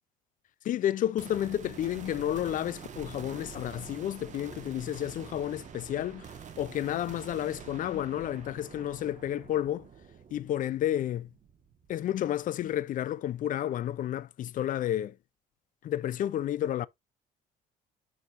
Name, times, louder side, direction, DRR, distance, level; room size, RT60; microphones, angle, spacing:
voice 1, 0.6-9.9 10.3-11.3 11.9-15.2 15.8-16.9, left 11 dB, 50° left, 0.5 m, -31 dB
sound 1, 1.2-12.5, right 7 dB, 45° right, 1.6 m, -47 dB
10.5 x 4.9 x 2.6 m
cardioid pair, 110°, 17 cm